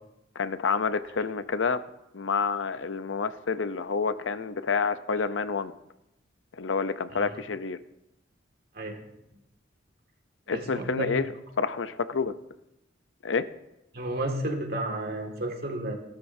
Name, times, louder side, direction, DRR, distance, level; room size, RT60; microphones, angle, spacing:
voice 1, 0.3-1.8 2.1-5.7 6.6-7.8 10.5-11.3 11.6-12.3 13.2-13.4, left 5 dB, 80° left, 12 dB, 0.7 m, -28 dB
voice 2, 10.5-11.2 13.9-16.0, right 1 dB, 55° right, 2 dB, 2.0 m, -32 dB
18.5 x 12.5 x 2.7 m, 0.89 s
head